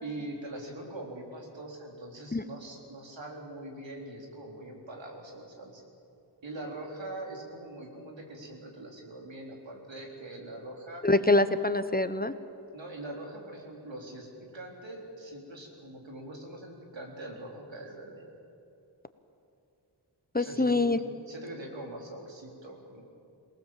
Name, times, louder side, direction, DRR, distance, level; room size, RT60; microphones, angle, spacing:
voice 1, 0.0-5.8 6.4-11.0 12.7-18.2 20.4-20.7 21.0-23.0, right 1 dB, 85° right, 0 dB, 4.2 m, -43 dB
voice 2, 11.0-12.3 20.3-21.0, left 2 dB, 20° left, 11 dB, 1.0 m, -24 dB
27.0 x 19.0 x 7.5 m, 2.7 s
wide cardioid pair, 60°, 44 cm